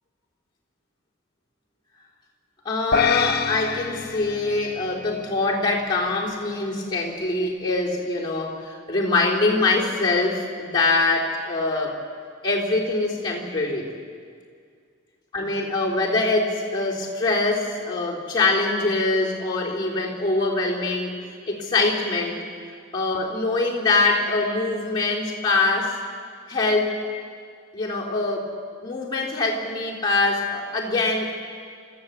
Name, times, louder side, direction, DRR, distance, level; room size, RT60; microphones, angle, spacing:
voice 1, 2.7-12.0 12.4-13.9 15.3-21.1 21.5-22.4 22.9-25.9 26.5-27.0 27.7-28.5 28.8-31.3, left 3 dB, 20° left, -5 dB, 3.6 m, -23 dB
sound 1, 2.9-5.4, left 6 dB, 45° left, 0.6 m, -26 dB
26.0 x 14.0 x 8.1 m, 2.2 s
head